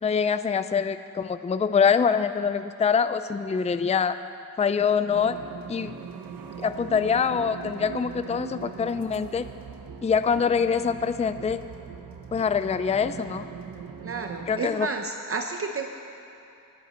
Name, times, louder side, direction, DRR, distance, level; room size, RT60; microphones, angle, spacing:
voice 1, 0.0-4.2 4.6-5.4 5.7-5.9 6.6-9.5 10.0-11.6 12.3-13.5 14.5-14.9, left 6 dB, 20° left, 11 dB, 0.4 m, -24 dB
sound 1, 5.1-14.6, right 6 dB, 85° right, 0.9 m, -40 dB
voice 2, 14.0-15.9, right 4 dB, 40° right, 4 dB, 0.7 m, -31 dB
25.5 x 10.5 x 4.3 m, 2.8 s
wide cardioid pair, 135°, 34 cm